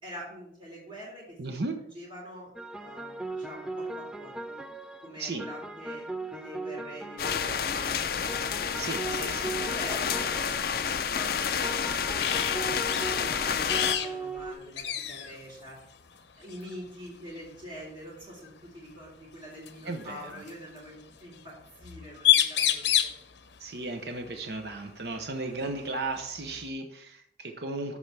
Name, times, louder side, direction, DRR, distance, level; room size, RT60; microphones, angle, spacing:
voice 1, 0.0-4.6 5.0-6.1 6.3-8.9 9.1-10.7 11.1-12.8 13.1-15.8 16.4-23.1, equal, 25° right, -8 dB, 3.5 m, -45 dB
voice 2, 1.4-1.7 5.2-5.5 8.8-9.5 19.8-20.4 23.6-28.0, right 3 dB, 65° right, 5 dB, 0.8 m, -35 dB
sound 1, 2.6-14.6, right 2 dB, 5° right, 0.4 m, -38 dB
sound 2, 7.2-14.0, left 7 dB, 55° left, 0.5 m, -29 dB
sound 3, 12.2-12.6 12.9-13.1 13.6-14.1 14.4-14.5 14.8-15.3 16.5-16.7 18.4-18.5 19.7-20.5 21.9-22.0 22.2-23.2 25.1-25.2 25.7-26.7, left 12 dB, 85° left, 0.8 m, -27 dB
13.5 x 4.8 x 3.4 m, 0.71 s
head